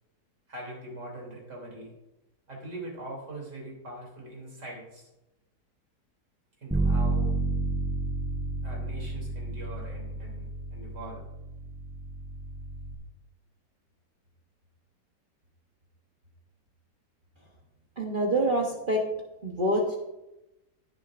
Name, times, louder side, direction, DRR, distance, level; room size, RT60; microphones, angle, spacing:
voice 1, 0.5-1.9 2.5-5.1 6.6-7.3 8.6-11.2, right 1 dB, 80° right, -2 dB, 3.9 m, -42 dB
Bass guitar, 6.7-13.0, right 2 dB, 10° right, 0.6 m, -31 dB
voice 2, 18.0-19.0 19.4-20.0, right 1 dB, 35° right, -1 dB, 1.1 m, -26 dB
17.5 x 7.4 x 2.6 m, 0.95 s
omnidirectional pair, 1.8 m